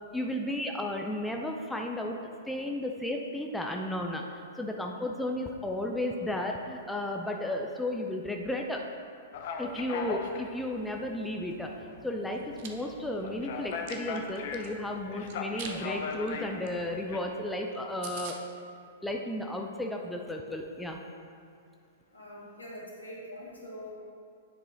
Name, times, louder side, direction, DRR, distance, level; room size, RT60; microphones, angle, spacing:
voice 1, 0.1-2.2 2.5-8.8 9.6-11.7 12.0-18.4 19.0-21.0, left 1 dB, 5° left, 1 dB, 0.5 m, -33 dB
sound 1, 9.3-17.2, left 5 dB, 50° left, 0.6 m, -39 dB
Chewing mastication, 12.3-12.7 13.2-14.7 15.3-15.8 16.1-16.3 16.6-16.7 17.0-17.1 17.5-17.6 17.7-17.8 18.0-18.4, right 7 dB, 45° right, 0.7 m, -43 dB
voice 2, 22.1-23.9, equal, 80° left, -5 dB, 1.9 m, -44 dB
9.8 x 4.8 x 3.8 m, 2.4 s
figure-of-eight pair, 105°, 0 cm